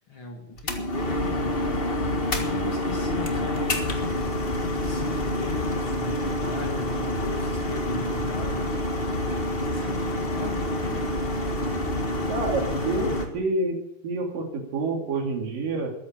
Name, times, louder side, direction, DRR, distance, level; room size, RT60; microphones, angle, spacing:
voice 1, 0.1-1.5 2.3-8.7 9.0-11.2, left 3 dB, 45° left, 3 dB, 2.0 m, -38 dB
sound 1, 0.6-13.3, left 1 dB, 65° left, 0.5 m, -27 dB
voice 2, 12.3-15.9, right 3 dB, 75° right, 2 dB, 4.2 m, -28 dB
13.5 x 9.7 x 8.8 m, 0.83 s
omnidirectional pair, 3.9 m